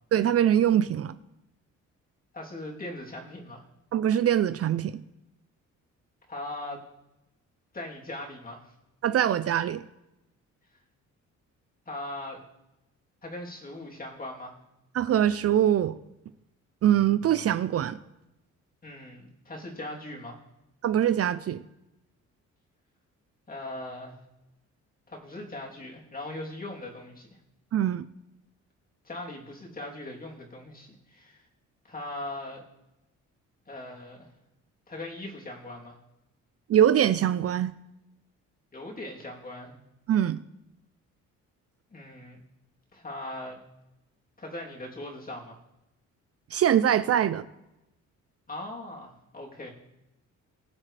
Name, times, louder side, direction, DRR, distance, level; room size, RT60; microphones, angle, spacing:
voice 1, 0.1-1.2 3.9-5.0 9.0-9.8 14.9-15.9 16.8-18.0 20.8-21.6 27.7-28.1 36.7-37.7 40.1-40.4 46.5-47.4, right 10 dB, 50° right, 0.6 m, -23 dB
voice 2, 2.3-3.6 6.3-6.8 7.7-8.7 11.9-12.4 13.2-14.5 18.8-20.4 23.5-24.2 25.1-27.3 29.0-31.4 31.8-32.6 33.7-34.3 34.9-36.0 38.7-39.8 41.9-42.4 42.9-43.6 44.4-45.6 48.5-49.7, left 1 dB, 30° left, 3.3 m, -39 dB
21.5 x 7.3 x 3.4 m
cardioid pair, 90°, 30 cm